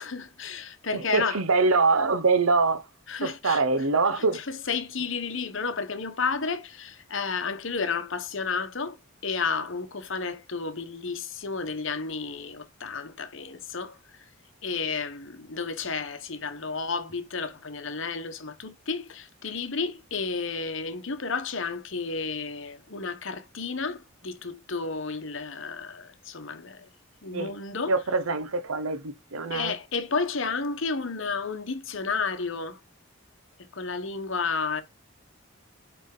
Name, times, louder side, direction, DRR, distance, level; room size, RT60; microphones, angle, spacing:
voice 1, 0.0-1.4 3.1-3.6 4.1-9.0 9.2-14.2 14.6-26.9 27.2-28.0 29.5-32.8 33.7-34.8, left 4 dB, 60° left, 1.1 m, -32 dB
voice 2, 0.9-2.8 3.2-4.4 27.3-27.5 27.9-29.7, right 3 dB, 80° right, 0.8 m, -24 dB
8.1 x 3.4 x 3.7 m
head